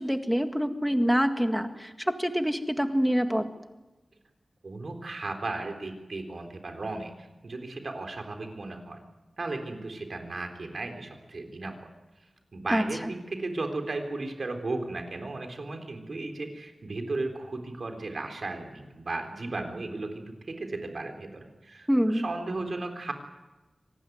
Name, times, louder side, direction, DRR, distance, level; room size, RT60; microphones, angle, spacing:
voice 1, 0.0-3.5 12.7-13.1 21.9-22.3, equal, 5° right, 7 dB, 1.9 m, -26 dB
voice 2, 4.6-9.0 9.4-11.7 12.5-23.1, right 2 dB, 60° right, 5 dB, 3.8 m, -35 dB
25.0 x 19.0 x 9.4 m, 1.1 s
wide cardioid pair, 100°, 0 cm